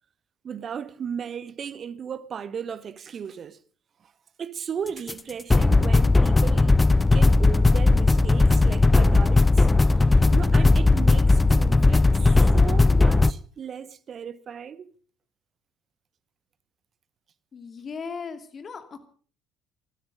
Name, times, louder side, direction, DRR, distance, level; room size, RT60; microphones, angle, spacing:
voice 1, 0.4-3.6 4.0-4.1 4.4-6.8 7.1-9.7 10.3-14.9, right 7 dB, 40° right, 1.0 m, -36 dB
sound 1, 5.1-5.2 5.5-13.3, left 3 dB, 20° left, 0.6 m, -18 dB
voice 2, 17.5-19.1, left 5 dB, 40° left, 2.5 m, -37 dB
20.0 x 13.0 x 5.2 m
figure-of-eight pair, 55°, 0 cm